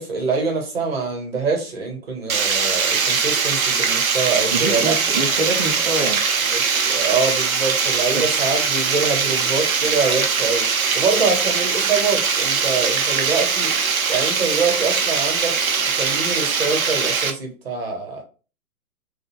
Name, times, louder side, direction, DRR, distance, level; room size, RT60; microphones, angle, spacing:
voice 1, 0.0-5.0 6.5-10.7 10.9-13.7 14.1-18.2, right 4 dB, 45° right, 1.0 m, -24 dB
Water, 2.3-17.3, right 5 dB, 70° right, 0.6 m, -21 dB
voice 2, 4.5-6.2 8.1-8.2, right 2 dB, 25° right, 0.5 m, -25 dB
2.4 x 2.2 x 3.1 m
figure-of-eight pair, 130°, 44 cm